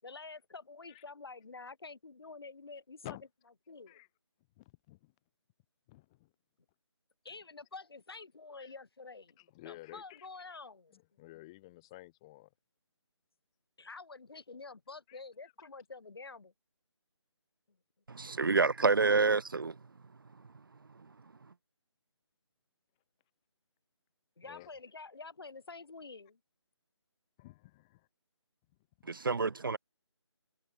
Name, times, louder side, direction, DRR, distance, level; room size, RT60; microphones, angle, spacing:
voice 1, 0.0-3.2 3.7-4.0 7.2-9.4 9.6-11.0 13.8-16.5 24.4-26.4, left 4 dB, 55° left, 5.0 m, -48 dB
voice 2, 4.6-5.1 5.9-6.3 8.6-8.7 9.4-10.3 10.9-12.5 15.1-15.2 24.4-24.7 27.4-28.1 29.0-29.1, left 19 dB, 10° left, 3.1 m, -52 dB
voice 3, 18.1-19.7 29.1-29.8, right 4 dB, 45° right, 1.1 m, -28 dB
figure-of-eight pair, 175°, 15 cm